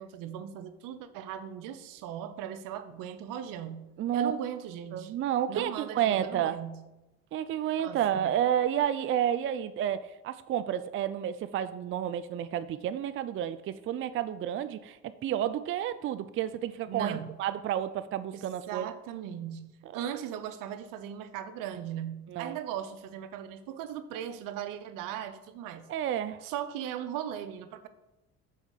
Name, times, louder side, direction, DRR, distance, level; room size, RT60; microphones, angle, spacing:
voice 1, 0.0-5.1 5.5-6.9 7.8-8.4 16.9-17.4 18.3-25.9 26.4-27.9, right 9 dB, 75° right, 11 dB, 0.7 m, -38 dB
voice 2, 4.0-4.3 4.9-6.6 7.3-15.0 15.2-18.9 22.3-22.6 25.9-26.4, right 10 dB, 40° right, 12 dB, 0.4 m, -30 dB
5.7 x 4.5 x 6.4 m, 0.99 s
supercardioid pair, 85°, 33 cm